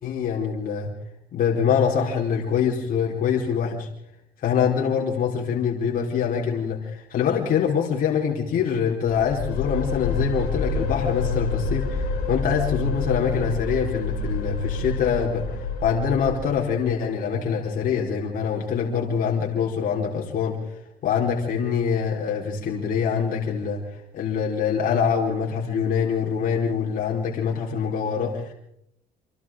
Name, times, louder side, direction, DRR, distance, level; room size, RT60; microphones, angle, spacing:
voice 1, 0.0-0.9 1.3-3.9 4.4-20.6 21.0-23.8 24.1-28.5, left 7 dB, 55° left, -2 dB, 4.2 m, -24 dB
sound 1, 9.1-16.9, left 3 dB, 80° left, 4.9 m, -28 dB
29.5 x 25.5 x 3.8 m, 0.76 s
cardioid pair, 110°, 17 cm